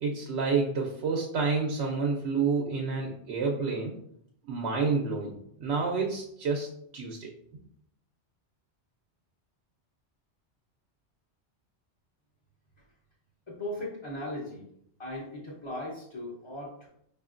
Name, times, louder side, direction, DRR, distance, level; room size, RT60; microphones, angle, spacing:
voice 1, 0.0-3.9 4.5-5.3 5.6-6.7 6.9-7.3, right 4 dB, 70° right, -1 dB, 0.8 m, -29 dB
voice 2, 13.5-14.6 15.0-16.9, left 1 dB, 30° left, -7 dB, 0.6 m, -38 dB
4.9 x 2.5 x 2.4 m, 0.71 s
omnidirectional pair, 1.2 m